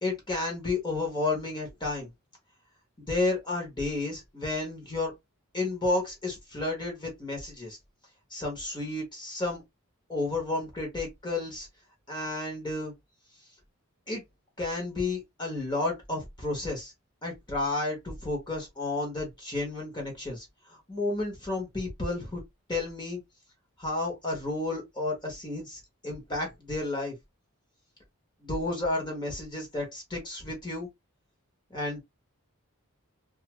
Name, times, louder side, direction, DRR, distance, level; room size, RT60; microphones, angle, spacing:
voice 1, 0.0-2.1 3.1-5.1 5.5-7.8 8.3-9.6 10.1-11.7 12.1-12.9 14.1-14.2 14.6-16.9 17.2-22.4 22.7-23.2 23.8-27.1 28.4-30.9 31.7-32.0, left 2 dB, 20° left, 1.0 m, -32 dB
2.5 x 2.4 x 3.0 m
head